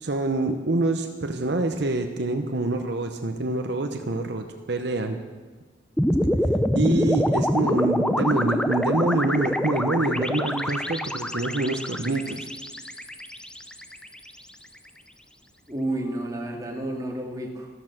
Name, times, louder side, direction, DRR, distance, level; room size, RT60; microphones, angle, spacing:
voice 1, 0.0-5.2 6.7-12.5, right 2 dB, 65° right, 5 dB, 0.9 m, -26 dB
sound 1, 6.0-14.3, equal, 5° left, 0.6 m, -25 dB
voice 2, 15.7-17.7, right 1 dB, 20° right, 0 dB, 2.2 m, -30 dB
14.0 x 13.0 x 6.0 m, 1.4 s
head